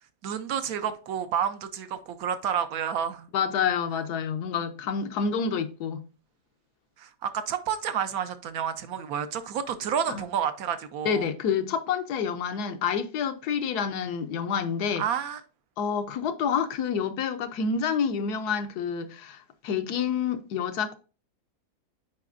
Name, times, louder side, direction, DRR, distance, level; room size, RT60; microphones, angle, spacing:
voice 1, 0.2-3.3 7.0-11.3 15.0-15.4, right 8 dB, 70° right, 1.1 m, -30 dB
voice 2, 3.3-6.1 10.1-10.2 11.0-15.0 15.8-20.9, left 6 dB, 75° left, 1.2 m, -28 dB
8.3 x 4.9 x 2.5 m
omnidirectional pair, 1.7 m